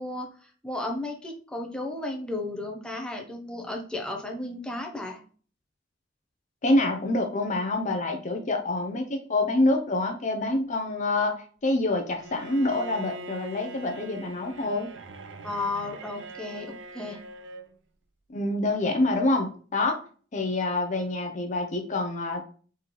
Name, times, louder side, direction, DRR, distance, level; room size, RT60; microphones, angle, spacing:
voice 1, 0.0-5.2 15.4-17.2, left 2 dB, 5° left, 1 dB, 0.7 m, -34 dB
voice 2, 6.6-11.4 11.6-14.9 18.3-20.0 20.3-22.4, left 2 dB, 40° left, 3 dB, 0.6 m, -26 dB
Bowed string instrument, 12.2-17.7, right 1 dB, 70° right, 0.5 m, -42 dB
4.2 x 3.8 x 3.0 m, 0.42 s
head